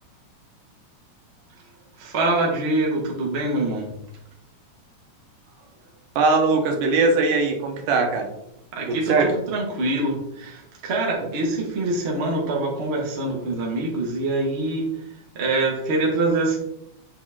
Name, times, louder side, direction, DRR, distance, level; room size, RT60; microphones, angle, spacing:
voice 1, 2.0-3.9 8.7-14.8 15.3-16.6, right 2 dB, 30° right, -2 dB, 1.3 m, -24 dB
voice 2, 6.2-8.3 8.8-9.3, right 3 dB, 80° right, 3 dB, 2.7 m, -20 dB
8.3 x 5.4 x 3.7 m, 0.83 s
omnidirectional pair, 3.7 m